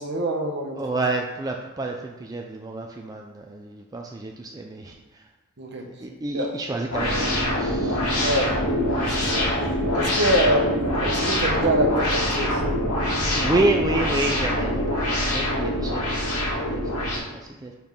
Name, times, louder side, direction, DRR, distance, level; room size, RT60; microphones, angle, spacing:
voice 1, 0.0-0.8 5.6-5.8 6.3-6.5 8.2-9.5 9.9-12.6, right 1 dB, 50° right, 2 dB, 1.1 m, -25 dB
voice 2, 0.8-5.3 5.8-8.0 13.0-17.7, right 2 dB, 15° right, 2 dB, 0.4 m, -29 dB
sound 1, 6.9-17.2, left 1 dB, 85° left, 2.3 m, -24 dB
5.2 x 4.5 x 5.3 m, 1.2 s
head